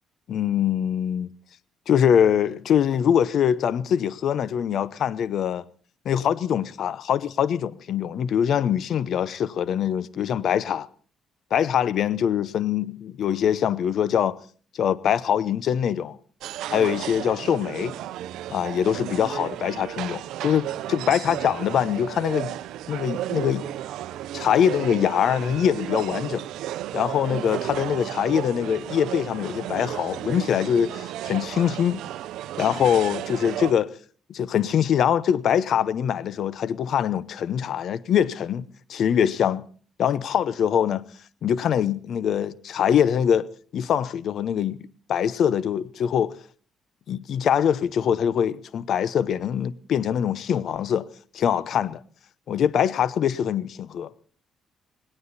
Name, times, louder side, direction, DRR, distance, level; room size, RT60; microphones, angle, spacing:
voice 1, 0.3-1.3 1.9-5.6 6.0-10.9 11.5-14.4 14.8-16.2 16.7-17.9 18.5-22.6 22.9-23.7 24.3-26.4 26.9-32.0 32.6-33.9 34.3-39.6 40.0-41.0 41.4-43.5 43.7-46.4 47.1-51.1 51.3-52.0 52.5-54.1, left 9 dB, 65° left, 0.8 m, -23 dB
sound 1, 16.4-33.7, right 13 dB, 85° right, 0.7 m, -33 dB
19.0 x 18.0 x 4.1 m
cardioid pair, 90°, 0 cm